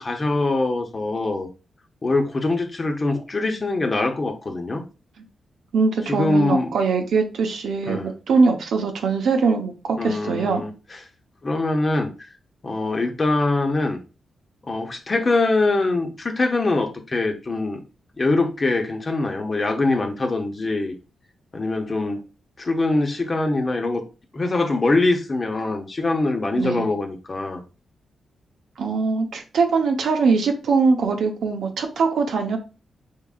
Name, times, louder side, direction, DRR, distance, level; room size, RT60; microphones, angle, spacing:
voice 1, 0.0-1.5 2.0-4.8 6.1-6.7 7.9-8.1 10.0-10.7 11.4-12.1 12.6-14.0 14.6-17.8 18.2-20.9 21.5-22.2 22.6-24.0 24.3-27.6, left 2 dB, 35° left, 0.8 m, -23 dB
voice 2, 5.7-10.6 26.6-26.9 28.8-32.6, right 4 dB, 80° right, 0.8 m, -22 dB
4.7 x 3.6 x 2.4 m
cardioid pair, 90°, 0 cm